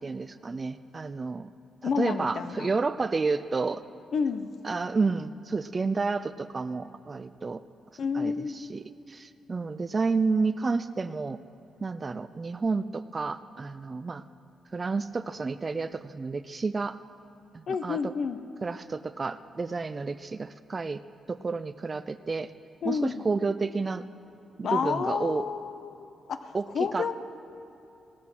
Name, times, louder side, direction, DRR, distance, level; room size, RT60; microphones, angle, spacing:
voice 1, 0.0-1.5 1.8-3.8 4.6-7.6 8.1-11.4 11.8-14.2 14.7-17.0 17.5-18.1 18.6-21.0 21.3-22.5 22.8-24.0 24.6-25.5 26.5-26.7 26.9-27.1, right 4 dB, 25° right, 13 dB, 0.3 m, -30 dB
voice 2, 1.8-2.7 4.1-4.5 8.0-8.5 17.7-18.4 22.8-23.2 24.6-27.1, left 6 dB, 55° left, 11 dB, 0.7 m, -30 dB
17.0 x 13.5 x 6.1 m, 2.7 s
cardioid pair, 140°, 0 cm